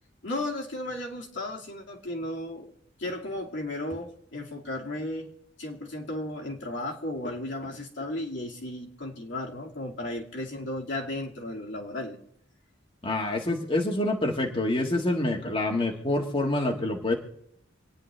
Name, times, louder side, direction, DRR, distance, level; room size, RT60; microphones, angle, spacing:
voice 1, 0.2-2.7 3.0-5.3 5.6-12.2 15.5-15.6, left 1 dB, 65° left, -1 dB, 2.4 m, -34 dB
voice 2, 13.0-17.1, left 1 dB, 30° left, 0 dB, 1.8 m, -27 dB
27.5 x 9.8 x 3.4 m, 0.74 s
head